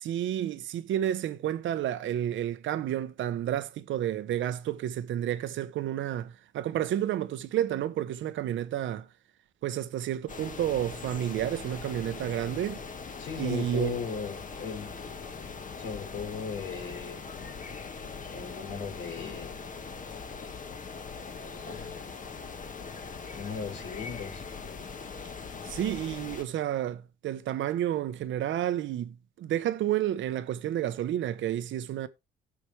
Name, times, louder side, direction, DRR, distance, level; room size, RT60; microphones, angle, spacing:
voice 1, 0.0-9.1 9.6-12.8 13.4-14.0 25.6-32.1, right 11 dB, 75° right, 0.9 m, -30 dB
sound 1, 10.3-26.4, left 5 dB, 40° left, 1.6 m, -41 dB
voice 2, 13.2-14.9 15.8-17.2 18.3-19.6 21.6-22.1 23.3-24.4, left 6 dB, 85° left, 3.8 m, -37 dB
16.5 x 6.0 x 3.3 m
cardioid pair, 90°, 20 cm